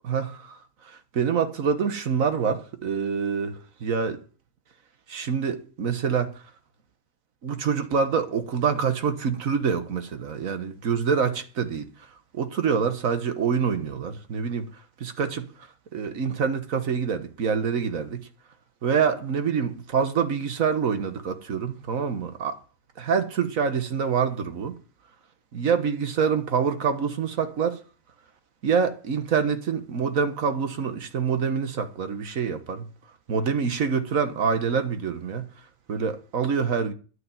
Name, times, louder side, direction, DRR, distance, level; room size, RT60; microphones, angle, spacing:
voice 1, 0.1-4.2 5.1-6.4 7.4-11.9 12.3-14.7 15.0-15.5 15.9-18.3 18.8-22.6 23.0-24.8 25.5-27.8 28.6-32.9 33.3-35.5 35.9-36.9, right 6 dB, 75° right, 1.7 m, -26 dB
11.5 x 6.4 x 9.3 m
omnidirectional pair, 1.5 m